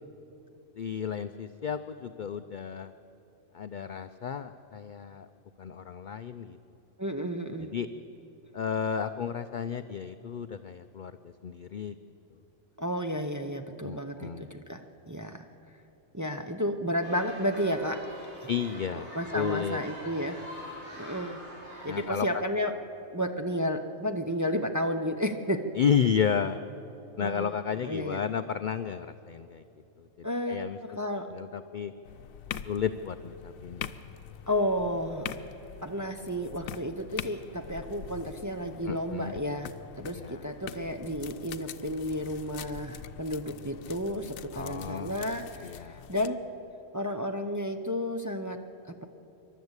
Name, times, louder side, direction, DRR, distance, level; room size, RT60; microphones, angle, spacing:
voice 1, 0.8-2.9 3.5-5.3 5.6-6.6 7.6-7.9 8.5-11.1 11.4-11.9 13.8-14.5 18.5-19.8 21.9-22.4 25.8-26.6 27.2-29.6 30.0-30.8 31.3-31.9 32.7-33.9 38.9-39.3 40.2-40.4 44.5-45.1 45.6-46.0, left 7 dB, 65° left, 10 dB, 0.5 m, -32 dB
voice 2, 7.0-7.8 12.8-15.5 16.1-18.1 18.4-18.5 18.9-20.4 21.0-21.4 21.8-22.8 23.1-25.6 27.2-27.6 27.8-28.2 30.2-31.3 34.5-35.3 35.8-46.4 46.9-49.0, equal, 20° right, 5 dB, 0.6 m, -32 dB
sound 1, 17.0-22.1, equal, 45° right, 4.7 m, -44 dB
sound 2, 32.0-46.3, left 9 dB, 85° left, 1.1 m, -44 dB
26.5 x 12.0 x 8.1 m, 2.9 s
omnidirectional pair, 1.4 m